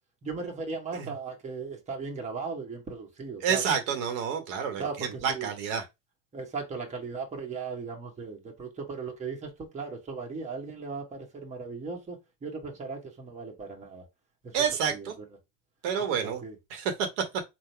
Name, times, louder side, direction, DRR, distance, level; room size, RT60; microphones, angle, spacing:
voice 1, 0.2-3.6 4.8-5.5 6.3-14.0 14.4-14.6 14.9-15.1 16.2-16.6, right 4 dB, 15° right, 1.3 m, -37 dB
voice 2, 3.4-5.8 14.5-15.1 15.8-16.4 16.7-17.2, right 7 dB, 60° right, 1.2 m, -29 dB
3.8 x 2.4 x 4.4 m
supercardioid pair, 120°, 40 cm